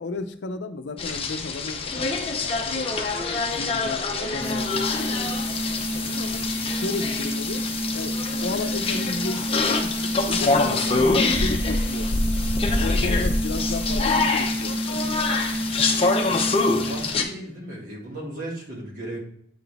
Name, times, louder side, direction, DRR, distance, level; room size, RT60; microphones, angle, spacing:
voice 1, 0.0-3.0 3.3-6.4 6.7-7.6 7.9-15.3, left 3 dB, 85° left, 9 dB, 0.5 m, -34 dB
sound 1, 1.0-17.2, left 3 dB, 30° left, 0.6 m, -25 dB
sound 2, 4.4-17.3, equal, 15° left, 1.2 m, -29 dB
voice 2, 16.1-16.4 16.7-19.2, right 1 dB, 50° right, -4 dB, 2.1 m, -37 dB
8.4 x 4.0 x 3.4 m, 0.68 s
head